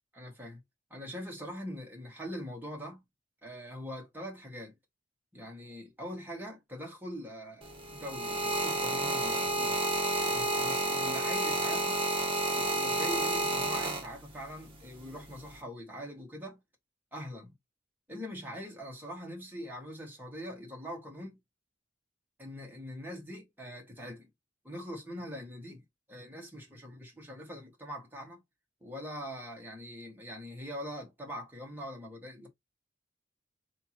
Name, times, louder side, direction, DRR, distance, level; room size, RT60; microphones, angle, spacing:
voice 1, 0.1-0.6 0.9-3.0 3.4-4.7 5.3-9.8 10.2-12.0 12.5-16.6 17.1-17.5 18.1-21.4 22.4-24.3 24.6-25.8 26.1-28.4 28.8-32.5, equal, 10° right, 1.8 m, -43 dB
sound 1, 7.6-14.5 15.3-15.6, right 2 dB, 30° right, 1.3 m, -30 dB
3.5 x 3.0 x 4.3 m
head